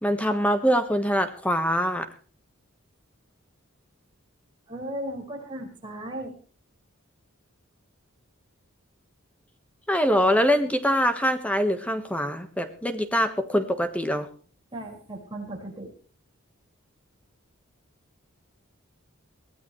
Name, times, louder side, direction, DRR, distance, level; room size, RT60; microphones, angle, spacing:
voice 1, 0.0-2.1 9.9-14.3, equal, 5° left, 8 dB, 1.3 m, -24 dB
voice 2, 4.7-6.3 14.7-15.9, right 1 dB, 20° right, 0 dB, 5.4 m, -36 dB
23.0 x 16.0 x 3.2 m, 0.40 s
head